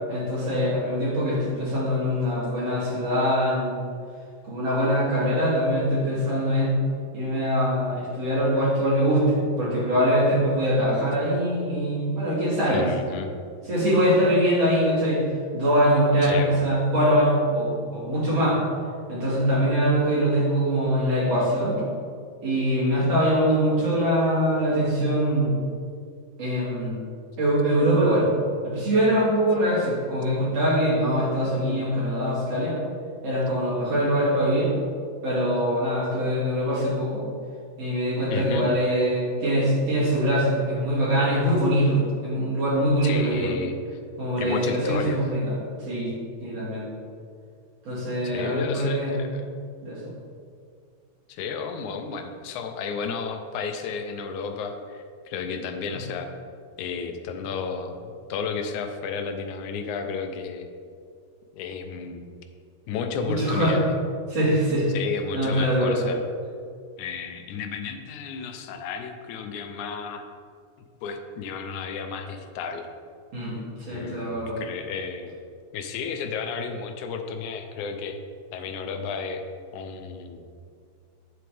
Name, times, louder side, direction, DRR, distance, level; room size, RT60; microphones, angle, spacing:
voice 1, 0.1-3.9 4.4-6.8 7.1-12.9 13.7-15.2 15.5-18.6 19.1-21.8 22.4-25.6 26.4-27.0 27.4-28.3 28.6-32.8 33.2-34.7 35.2-37.2 37.8-43.5 44.2-46.1 46.4-46.9 47.9-49.2 49.8-50.1 55.9-56.0 63.3-63.8 64.3-64.9 65.3-66.0 73.3-74.6, equal, 60° right, -7 dB, 3.6 m, -23 dB
voice 2, 12.7-13.3 16.2-16.6 38.3-38.7 43.0-43.7 44.4-45.2 48.2-49.5 51.3-56.3 56.8-60.7 61.5-62.3 62.9-63.9 64.9-66.2 67.0-70.3 71.0-72.9 73.9-75.4 75.7-78.2 78.5-79.4 79.7-80.5, left 5 dB, 90° left, 6 dB, 2.2 m, -32 dB
9.7 x 7.7 x 3.4 m, 2.2 s
omnidirectional pair, 3.3 m